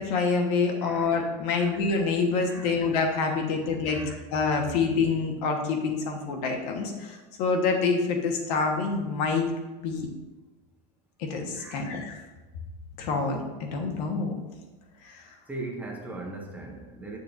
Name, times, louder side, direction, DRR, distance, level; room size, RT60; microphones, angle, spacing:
voice 1, 0.0-9.5 9.8-10.1 11.2-12.2 13.0-14.3 15.0-15.2, left 4 dB, 70° left, 2 dB, 1.4 m, -27 dB
voice 2, 0.8-1.1 1.5-1.8 2.4-2.9 3.2-4.2 11.5-11.9 15.5-17.2, right 2 dB, 10° right, -1 dB, 0.7 m, -40 dB
8.9 x 6.8 x 2.6 m, 1.2 s
supercardioid pair, 165°, 21 cm